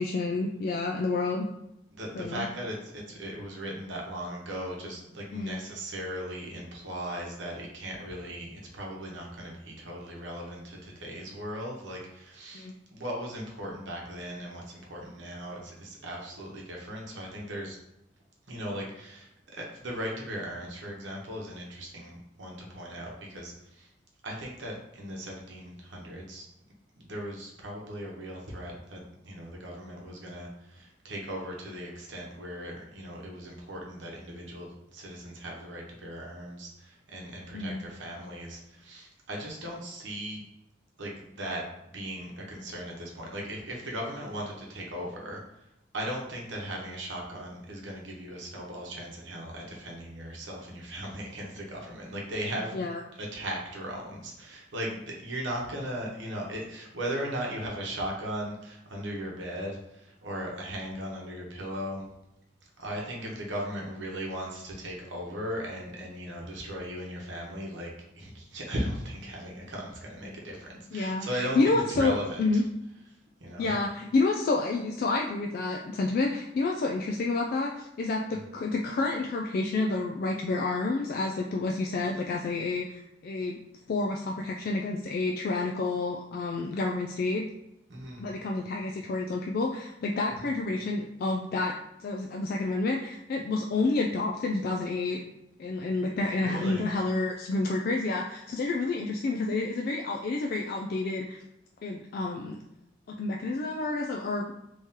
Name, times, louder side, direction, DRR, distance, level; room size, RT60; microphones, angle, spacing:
voice 1, 0.0-1.5 2.1-2.5 5.3-5.6 12.5-12.7 37.5-37.8 52.7-53.0 70.9-72.6 73.6-83.6 83.9-87.4 88.2-91.7 92.0-95.2 95.6-101.4 101.8-102.6 103.1-104.5, left 3 dB, 55° left, 0 dB, 0.3 m, -29 dB
voice 2, 2.0-17.8 18.5-23.9 24.2-26.5 27.0-40.4 41.0-41.6 41.9-45.4 45.9-52.8 53.2-62.1 62.8-72.6 73.4-73.7 87.9-88.3 90.4-90.5 96.4-96.9, equal, 75° right, -1 dB, 1.0 m, -38 dB
3.6 x 3.1 x 2.8 m, 0.85 s
head